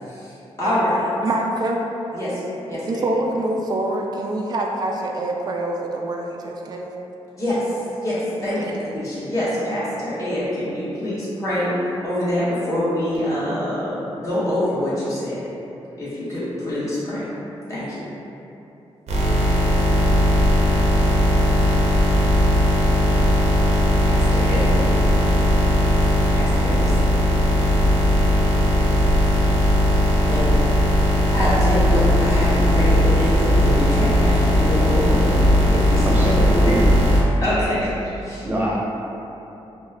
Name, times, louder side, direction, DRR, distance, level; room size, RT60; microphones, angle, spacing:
voice 1, 0.6-1.1 2.1-2.4 2.6-3.0 7.4-8.6 8.9-11.7 12.0-15.4 16.0-17.3 17.7-18.0 24.0-24.8 26.3-26.9 30.3-30.5 31.3-35.3 35.7-36.2 37.4-38.4, left 1 dB, 30° left, -12 dB, 1.5 m, -25 dB
voice 2, 1.2-1.8 2.9-6.9 8.6-8.9, right 2 dB, 40° right, 0 dB, 0.3 m, -25 dB
sound 1, 19.1-37.2, left 1 dB, 85° right, 0.6 m, -18 dB
voice 3, 36.0-36.8 37.2-37.3 38.4-38.8, right 1 dB, 15° right, -7 dB, 0.9 m, -24 dB
5.0 x 2.2 x 2.4 m, 3.0 s
cardioid pair, 95°, 11 cm